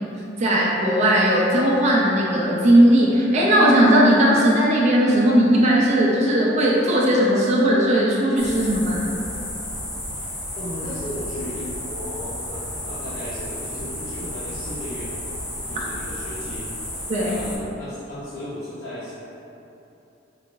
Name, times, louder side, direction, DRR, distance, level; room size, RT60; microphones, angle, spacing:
voice 1, 0.4-9.0 17.1-17.4, right 1 dB, 35° right, -4 dB, 0.4 m, -17 dB
sound 1, 8.4-17.6, left 1 dB, 20° left, 1.0 m, -32 dB
voice 2, 10.6-15.2 15.7-16.9 17.2-19.1, left 1 dB, 60° left, -10 dB, 0.6 m, -35 dB
3.6 x 3.0 x 2.5 m, 2.9 s
head